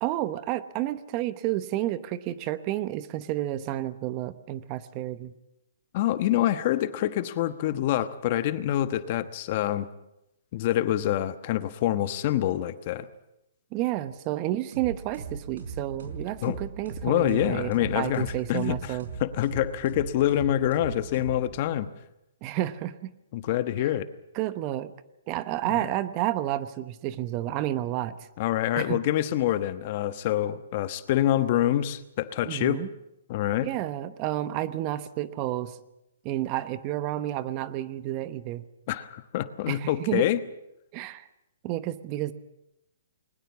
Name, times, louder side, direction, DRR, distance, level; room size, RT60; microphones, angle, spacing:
voice 1, 0.0-5.3 13.7-19.1 22.4-23.1 24.3-24.9 25.3-28.3 28.8-29.0 32.5-32.9 33.6-35.8 36.2-38.6 39.7-40.3 40.9-41.3 41.6-42.3, right 14 dB, 30° right, 13 dB, 1.0 m, -30 dB
voice 2, 5.9-9.9 10.5-13.1 16.4-16.6 17.0-21.9 23.3-24.0 25.6-25.9 28.4-32.8 33.3-33.7 38.9-40.4, left 13 dB, 40° left, 12 dB, 1.2 m, -26 dB
sound 1, 14.7-21.9, right 5 dB, 75° right, 5.1 m, -39 dB
21.5 x 20.0 x 7.3 m, 0.87 s
hypercardioid pair, 150°, 0 cm